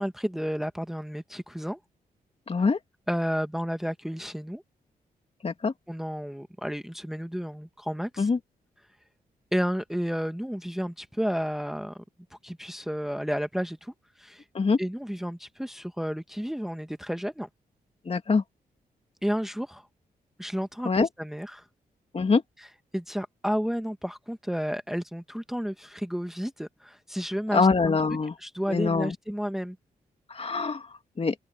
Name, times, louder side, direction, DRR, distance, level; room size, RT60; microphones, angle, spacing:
voice 1, 0.0-1.8 3.1-4.6 5.9-8.3 9.5-12.0 12.4-13.9 14.2-14.4 14.8-17.5 19.2-19.9 20.4-21.6 22.9-27.7 28.4-29.8, equal, ahead, 1.2 m, -31 dB
voice 2, 2.5-2.8 5.4-5.7 8.2-8.4 14.5-14.8 18.1-18.4 20.8-21.1 22.1-22.4 27.5-28.3 28.7-29.1 30.3-30.9 31.2-31.3, left 4 dB, 40° left, 2.4 m, -24 dB
open air
cardioid pair, 70°, 16 cm